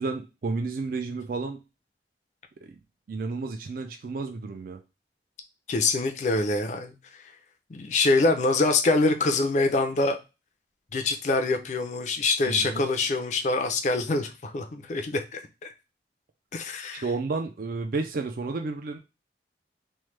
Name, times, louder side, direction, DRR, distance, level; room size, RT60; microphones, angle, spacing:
voice 1, 0.0-1.6 2.6-2.7 3.1-4.8 12.5-12.8 17.0-19.0, right 3 dB, 50° right, 5 dB, 0.4 m, -31 dB
voice 2, 5.7-6.9 7.7-10.2 10.9-15.7 16.5-17.0, left 3 dB, 40° left, 6 dB, 0.4 m, -25 dB
3.1 x 2.1 x 3.1 m, 0.27 s
head